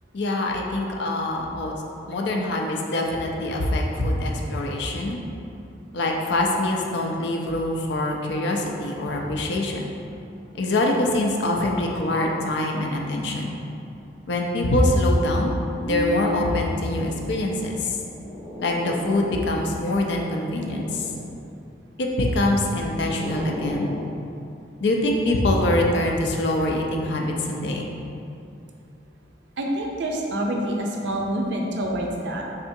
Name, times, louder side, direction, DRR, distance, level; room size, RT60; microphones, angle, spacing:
voice 1, 0.1-1.7 2.1-5.2 5.9-9.9 10.6-13.6 14.3-15.5 15.8-18.0 18.6-21.1 22.0-23.9 24.8-27.9, left 1 dB, 65° left, 0 dB, 0.4 m, -24 dB
Bass guitar, 15.9-18.3, left 5 dB, 40° left, 0.8 m, -34 dB
sound 1, 18.0-19.8 20.2-21.3 22.2-24.1, left 1 dB, 10° right, 0.6 m, -35 dB
voice 2, 29.6-32.4, right 1 dB, 70° right, 0 dB, 0.5 m, -27 dB
3.7 x 3.3 x 2.7 m, 2.6 s
head